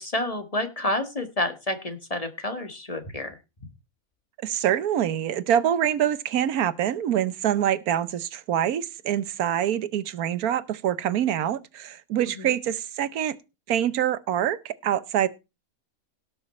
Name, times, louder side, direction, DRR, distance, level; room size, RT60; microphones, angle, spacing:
voice 1, 0.0-3.4 12.4-12.5, left 1 dB, 25° left, 1.5 m, -29 dB
voice 2, 4.4-13.4 13.7-15.3, right 10 dB, 85° right, 1.3 m, -25 dB
17.5 x 6.4 x 4.3 m
omnidirectional pair, 1.5 m